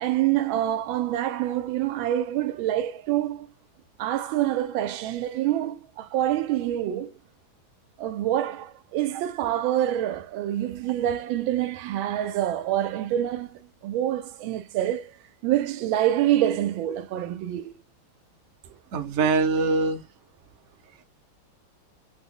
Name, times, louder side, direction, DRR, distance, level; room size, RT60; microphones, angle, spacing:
voice 1, 0.0-3.5 4.0-7.1 8.0-15.2 15.4-17.8, right 12 dB, 85° right, 1.4 m, -26 dB
voice 2, 18.9-20.0, right 4 dB, 60° right, 0.8 m, -23 dB
3.5 x 2.0 x 3.6 m
omnidirectional pair, 2.2 m